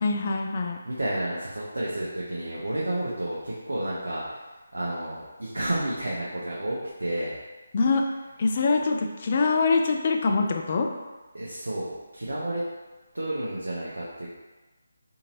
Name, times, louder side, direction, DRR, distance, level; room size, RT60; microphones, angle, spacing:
voice 1, 0.0-0.8 7.7-8.0 8.4-10.9, left 4 dB, 40° left, 3 dB, 0.3 m, -24 dB
voice 2, 0.9-4.4 4.7-7.3 11.3-12.6 13.1-14.3, right 1 dB, 85° right, -6 dB, 0.6 m, -31 dB
2.7 x 2.6 x 2.9 m, 1.2 s
figure-of-eight pair, 160°, 0 cm